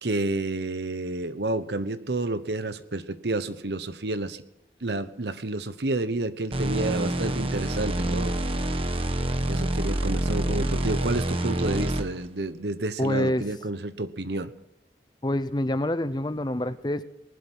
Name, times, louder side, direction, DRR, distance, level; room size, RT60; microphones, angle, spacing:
voice 1, 0.0-4.4 4.8-8.4 9.5-14.5, right 2 dB, 75° right, 12 dB, 1.1 m, -30 dB
sound 1, 6.5-12.3, right 1 dB, 30° right, 1.1 m, -27 dB
voice 2, 13.0-13.4 15.2-17.0, left 1 dB, 25° left, 13 dB, 0.7 m, -26 dB
20.5 x 11.5 x 6.1 m, 0.87 s
head